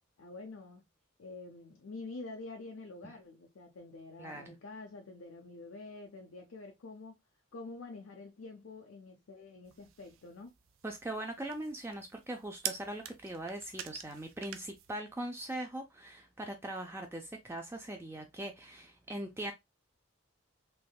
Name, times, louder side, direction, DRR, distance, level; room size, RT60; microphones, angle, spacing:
voice 1, 0.2-0.8 1.2-7.2 7.5-10.5, left 3 dB, 80° left, 0.5 m, -47 dB
voice 2, 4.2-4.6 10.8-19.5, right 1 dB, 10° right, 0.3 m, -41 dB
sound 1, 9.6-15.0, right 10 dB, 80° right, 0.5 m, -46 dB
3.4 x 3.1 x 2.3 m
head